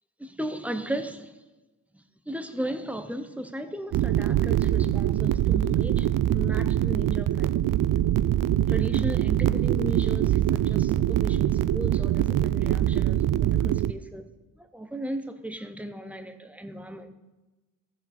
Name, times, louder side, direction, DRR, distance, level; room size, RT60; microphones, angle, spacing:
voice 1, 0.2-1.3 1.9-7.9 8.7-14.3 14.6-17.2, right 1 dB, 5° right, 0.7 m, -36 dB
sound 1, 3.9-13.9, right 12 dB, 65° right, 0.5 m, -23 dB
14.5 x 7.1 x 4.2 m
wide cardioid pair, 130°, 35 cm